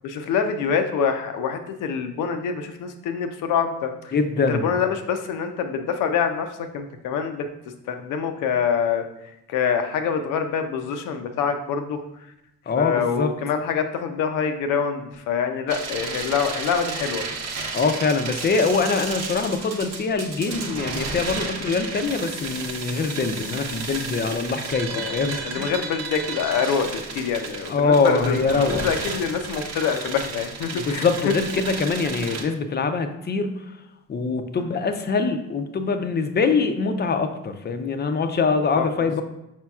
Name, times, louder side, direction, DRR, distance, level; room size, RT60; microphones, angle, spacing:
voice 1, 0.0-4.1 4.5-7.5 7.9-12.0 12.8-17.2 24.9-25.2 25.4-31.3 34.5-34.6 38.7-38.9, left 6 dB, 90° left, 7 dB, 0.6 m, -25 dB
voice 2, 4.1-4.7 12.7-13.3 17.7-25.7 27.7-28.9 30.7-33.8 34.1-39.2, left 4 dB, 35° left, 8 dB, 0.5 m, -23 dB
sound 1, 15.7-32.4, right 4 dB, 60° right, 0.8 m, -33 dB
5.0 x 4.4 x 2.3 m, 0.87 s
cardioid pair, 90°, 30 cm